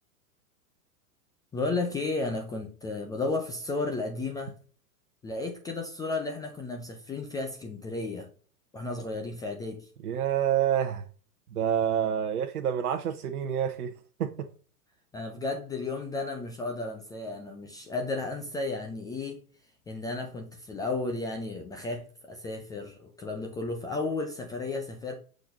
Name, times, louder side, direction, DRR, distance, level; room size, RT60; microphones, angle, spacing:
voice 1, 1.5-4.5 5.2-8.3 8.7-9.8 15.1-19.4 19.9-25.1, left 3 dB, 10° left, 0.4 m, -33 dB
voice 2, 10.0-11.0 11.5-13.9 14.2-14.5, right 9 dB, 70° right, 0.9 m, -27 dB
6.9 x 3.9 x 3.9 m
hypercardioid pair, 105°, 46 cm